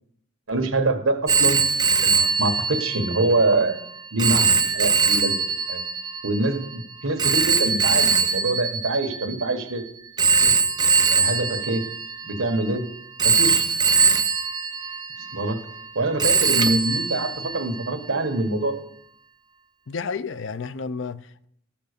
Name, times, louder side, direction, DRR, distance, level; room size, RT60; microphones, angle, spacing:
voice 1, 0.5-1.6 2.0-3.8 4.1-5.8 6.2-9.8 10.4-10.6 11.1-11.8 12.2-12.8 13.2-13.6 15.3-15.7 15.9-18.8, right 2 dB, 80° right, 1.6 m, -25 dB
Telephone, 1.3-9.6 10.2-12.7 13.2-15.9 16.2-17.9, right 5 dB, 20° right, 0.5 m, -22 dB
voice 2, 19.9-21.5, left 5 dB, 60° left, 0.5 m, -31 dB
14.5 x 5.9 x 6.8 m
head